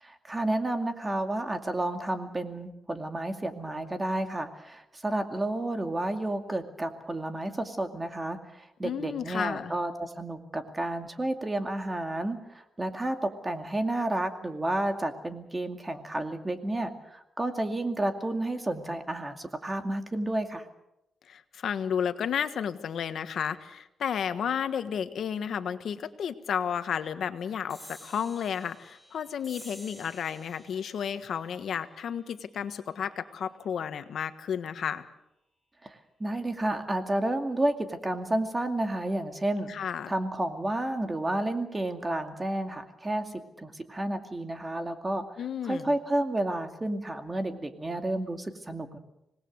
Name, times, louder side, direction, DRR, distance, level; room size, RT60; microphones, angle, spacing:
voice 1, 0.0-20.6 35.8-39.7 40.1-43.3 43.6-45.2 45.6-49.0, right 1 dB, 20° right, 6 dB, 2.3 m, -31 dB
voice 2, 8.8-9.7 21.3-35.0 39.7-40.1 45.4-45.9, left 8 dB, 75° left, 10 dB, 1.4 m, -32 dB
sound 1, 27.7-34.5, equal, 5° right, 4.8 m, -53 dB
25.5 x 19.5 x 6.6 m, 0.85 s
cardioid pair, 105°, 0 cm